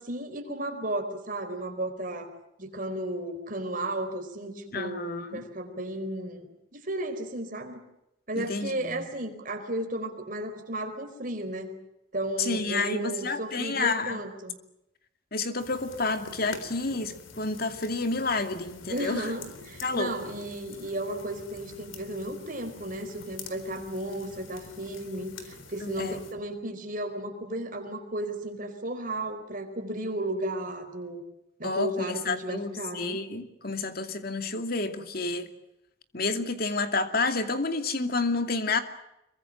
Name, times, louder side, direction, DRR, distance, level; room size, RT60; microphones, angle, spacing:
voice 1, 0.0-2.3 2.6-6.5 6.7-7.8 8.3-11.7 12.1-14.6 18.9-31.2 31.6-33.2, right 1 dB, 45° right, 6 dB, 4.4 m, -34 dB
voice 2, 4.7-5.4 8.4-9.0 12.4-14.2 15.3-19.3 19.8-20.1 25.8-26.2 31.6-35.5 36.1-38.8, left 3 dB, 50° left, 7 dB, 2.5 m, -30 dB
sound 1, 15.6-26.3, left 4 dB, 90° left, 3.9 m, -47 dB
26.0 x 23.5 x 7.5 m, 0.85 s
head